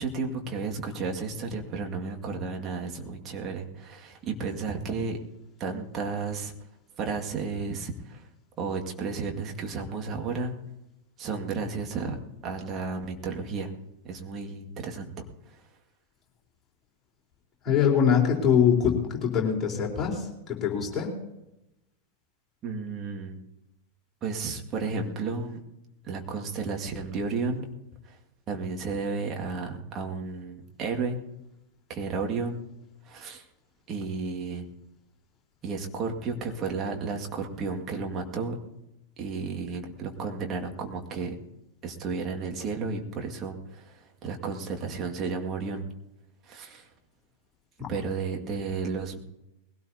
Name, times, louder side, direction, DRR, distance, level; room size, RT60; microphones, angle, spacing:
voice 1, 0.0-5.2 5.6-6.5 7.0-8.3 8.6-10.5 11.2-12.2 12.4-13.7 14.0-15.1 15.5-15.6 22.6-23.4 24.2-25.6 26.0-27.7 28.0-28.2 28.5-31.2 31.9-32.6 33.0-33.4 33.9-34.7 35.6-38.6 39.2-41.4 41.8-45.9 46.4-46.9 47.9-49.2, right 4 dB, 30° right, 1 dB, 2.1 m, -33 dB
voice 2, 17.6-20.3 20.6-21.1, left 7 dB, 25° left, -2 dB, 4.0 m, -23 dB
21.5 x 17.0 x 2.8 m, 0.91 s
figure-of-eight pair, 90°, 0 cm